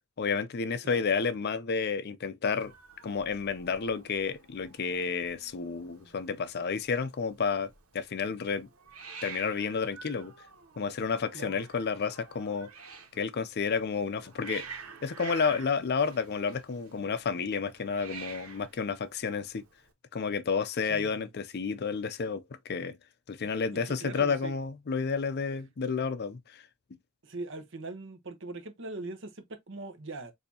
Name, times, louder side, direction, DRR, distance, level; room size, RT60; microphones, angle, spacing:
voice 1, 0.2-2.7 3.0-8.7 9.2-10.5 10.8-12.7 13.1-19.6 20.1-23.0 23.3-26.6, left 5 dB, 50° left, 0.5 m, -31 dB
Hiss, 2.6-19.9, right 6 dB, 90° right, 1.4 m, -49 dB
voice 2, 20.9-21.2 23.9-24.5 27.2-30.3, right 2 dB, 60° right, 1.0 m, -41 dB
6.7 x 2.8 x 2.7 m
head